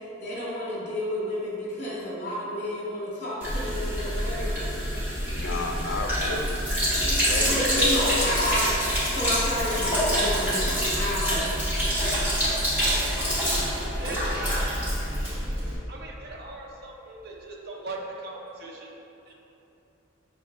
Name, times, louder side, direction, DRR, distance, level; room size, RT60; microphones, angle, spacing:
voice 1, 0.2-4.7 7.0-8.6 9.1-11.6, left 1 dB, 35° left, -8 dB, 1.1 m, -31 dB
Sink (filling or washing), 3.4-15.8, equal, 10° right, 0.9 m, -26 dB
voice 2, 5.3-6.6 7.0-8.4, left 3 dB, 85° left, 4 dB, 0.4 m, -31 dB
voice 3, 15.9-18.9 19.3-19.4, right 2 dB, 50° right, -1 dB, 0.5 m, -39 dB
5.5 x 2.7 x 2.4 m, 2.9 s
head